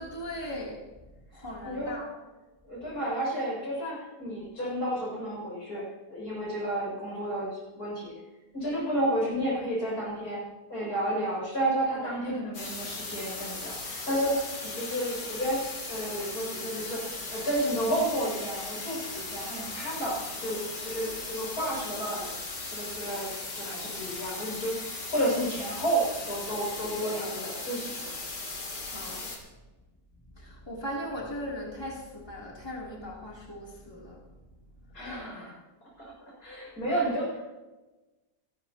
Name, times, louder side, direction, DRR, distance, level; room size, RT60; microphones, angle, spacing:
voice 1, 0.0-2.1 28.9-29.2 30.1-34.5 34.7-34.9, equal, 15° left, -4 dB, 3.3 m, -39 dB
voice 2, 1.6-2.0 2.6-8.1 8.5-10.4 10.7-17.0 17.3-22.3 22.7-28.1 34.9-35.5 36.0-36.1 36.4-37.4, right 1 dB, 65° left, -4 dB, 7.2 m, -31 dB
sound 1, 12.5-29.4, left 3 dB, 85° left, 3.6 m, -38 dB
27.5 x 13.0 x 3.0 m, 1.1 s
omnidirectional pair, 1.8 m